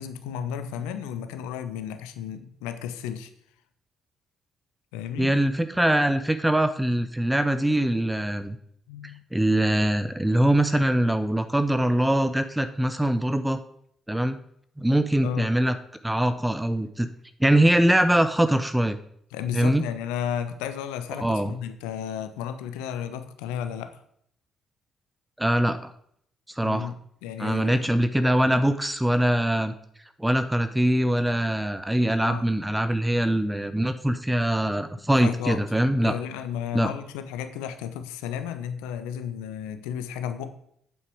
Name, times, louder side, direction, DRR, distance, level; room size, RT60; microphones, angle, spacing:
voice 1, 0.0-3.3 4.9-5.4 8.9-9.2 15.2-15.5 19.3-23.9 26.6-27.0 27.2-27.9 28.5-28.6 32.2-32.4 35.2-35.6 35.9-40.5, left 9 dB, 75° left, 10 dB, 0.7 m, -33 dB
voice 2, 5.2-8.6 9.3-13.6 14.1-14.4 14.8-15.8 16.0-17.1 17.4-19.0 19.5-19.8 21.2-21.5 25.4-25.9 26.6-26.9 27.4-29.7 30.2-36.1 36.7-36.9, right 1 dB, 10° right, 10 dB, 0.7 m, -23 dB
8.6 x 8.0 x 4.6 m, 0.68 s
figure-of-eight pair, 45°, 0 cm